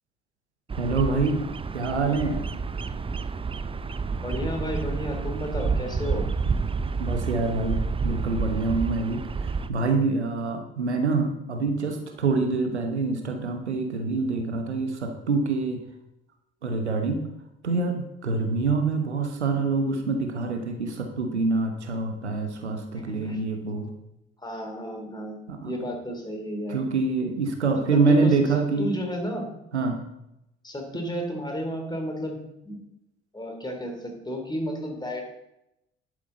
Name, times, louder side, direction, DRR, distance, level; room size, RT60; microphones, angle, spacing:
Bird vocalization bird call bird song, 0.7-9.7, right 4 dB, 15° right, 0.5 m, -29 dB
voice 1, 0.8-1.4 1.7-2.4 7.0-9.2 9.7-15.8 16.6-17.2 17.6-23.9 25.5-25.7 26.7-28.9 29.7-30.0, right 3 dB, 90° right, 5 dB, 1.0 m, -25 dB
voice 2, 4.2-6.2 22.9-23.4 24.4-25.4 25.6-26.8 27.9-29.4 30.6-32.4 32.6-32.8 33.3-35.2, equal, 15° left, 3 dB, 3.1 m, -32 dB
11.0 x 8.6 x 3.9 m, 0.85 s
figure-of-eight pair, 55°, 33 cm